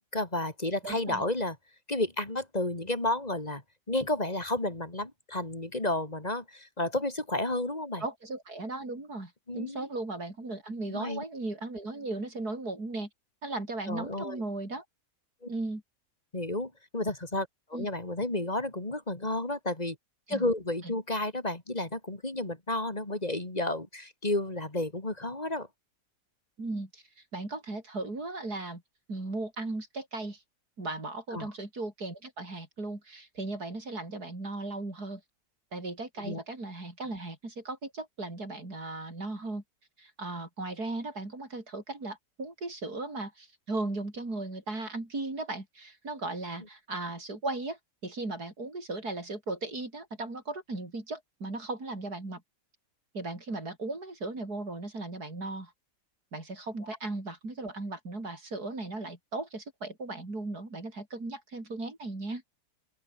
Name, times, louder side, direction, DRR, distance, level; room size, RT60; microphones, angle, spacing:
voice 1, 0.1-1.6 1.9-3.6 3.9-8.0 9.5-9.9 10.9-11.2 13.9-14.4 16.3-20.0 20.3-25.7 31.3-31.5 36.2-36.4, left 2 dB, 25° left, 3.4 m, -31 dB
voice 2, 0.8-1.2 8.0-13.1 13.4-14.8 15.5-15.8 17.7-17.9 20.3-20.5 20.8-20.9 26.6-28.8 29.1-30.4 30.8-35.2 35.7-39.6 40.0-52.4 53.1-55.7 56.3-62.4, right 2 dB, 75° right, 6.3 m, -37 dB
open air
omnidirectional pair, 1.7 m